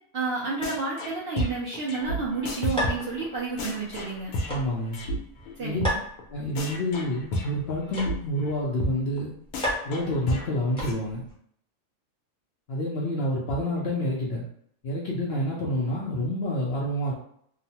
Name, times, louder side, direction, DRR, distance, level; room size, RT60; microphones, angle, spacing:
voice 1, 0.1-4.3 5.6-6.0, right 4 dB, 65° right, -5 dB, 0.6 m, -30 dB
sound 1, 0.6-1.1 1.4-5.2 5.5-5.6 5.8-5.9 6.2-6.3 6.6-8.1 8.4-8.5 8.8-8.9 9.2-9.3 9.5-10.9, equal, 85° left, 1.1 m, -31 dB
sound 2, 2.0-11.3, equal, 5° left, 0.7 m, -37 dB
voice 2, 4.5-5.0 5.6-5.8 6.3-9.3 9.8-11.3 12.7-14.4 14.8-17.1, left 1 dB, 65° left, -3 dB, 0.6 m, -28 dB
2.9 x 2.0 x 2.8 m, 0.68 s
omnidirectional pair, 1.5 m